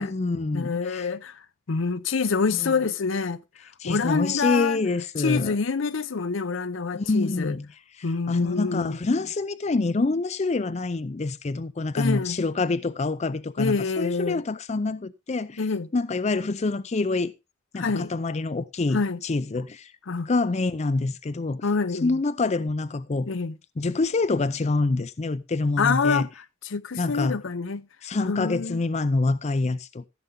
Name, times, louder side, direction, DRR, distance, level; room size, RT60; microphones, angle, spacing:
voice 1, 0.0-1.1 2.5-2.7 3.8-5.6 6.9-7.7 8.3-15.6 15.9-17.3 17.7-19.9 20.3-21.7 22.0-23.3 23.8-26.3 27.0-27.4 28.0-30.1, left 3 dB, 35° left, 0.5 m, -26 dB
voice 2, 0.5-1.4 1.7-3.4 3.8-4.8 5.2-7.6 8.0-9.0 12.0-12.4 13.6-14.4 15.6-15.9 17.8-18.1 18.9-19.2 20.1-20.3 21.6-22.2 23.3-23.6 25.8-27.9 28.2-28.8, left 4 dB, 75° left, 0.7 m, -26 dB
15.0 x 7.0 x 3.6 m
head